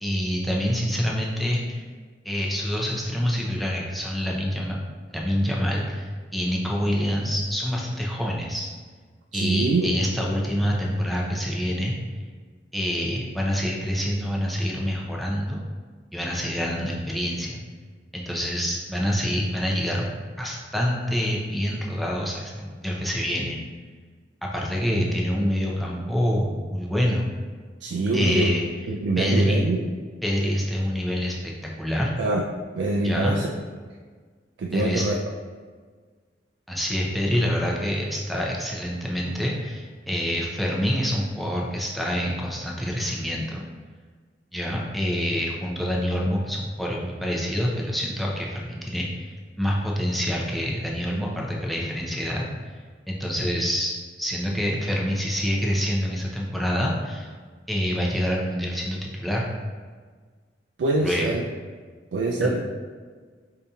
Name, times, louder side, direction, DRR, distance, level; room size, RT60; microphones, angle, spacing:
voice 1, 0.0-1.8 2.2-4.8 5.1-8.7 9.3-11.9 12.7-15.6 16.1-17.6 18.1-20.0 20.4-23.6 24.4-27.3 28.1-28.6 29.2-29.6 30.2-32.1 33.0-33.4 34.7-35.1 36.7-43.6 44.5-52.4 53.1-57.3 57.7-59.5 61.0-61.3, equal, ahead, -3 dB, 0.5 m, -26 dB
voice 2, 9.3-10.1 27.8-28.5 28.9-29.9 32.2-32.4 32.8-33.5 34.6-35.2 60.8-61.4 62.1-62.6, right 2 dB, 85° right, 0 dB, 0.3 m, -24 dB
5.1 x 2.7 x 2.3 m, 1.5 s
head